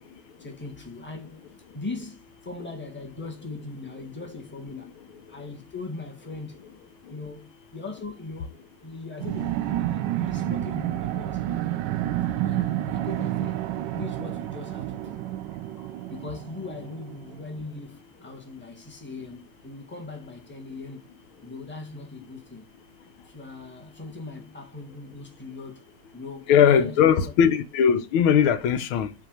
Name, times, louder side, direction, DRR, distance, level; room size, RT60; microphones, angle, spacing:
voice 1, 0.4-1.4 1.7-5.0 5.3-6.6 7.1-11.4 12.3-15.2 16.1-21.1 21.4-22.7 23.2-25.8 26.1-27.3, left 3 dB, 5° left, 1.4 m, -40 dB
sound 1, 9.2-17.4, right 13 dB, 70° right, 1.2 m, -29 dB
voice 2, 26.5-29.1, left 8 dB, 85° left, 1.6 m, -20 dB
8.4 x 3.4 x 6.3 m
omnidirectional pair, 2.2 m